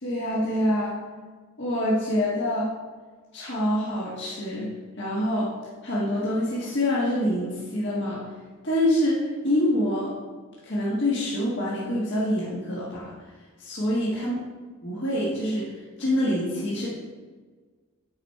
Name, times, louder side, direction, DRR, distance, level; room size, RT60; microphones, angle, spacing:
voice 1, 0.0-1.0 1.6-2.8 3.3-4.7 5.0-5.5 5.8-8.3 8.6-10.2 10.6-13.1 13.6-14.4 14.8-15.7 16.0-16.9, left 1 dB, 55° left, -6 dB, 1.5 m, -26 dB
9.6 x 4.3 x 4.6 m, 1.4 s
head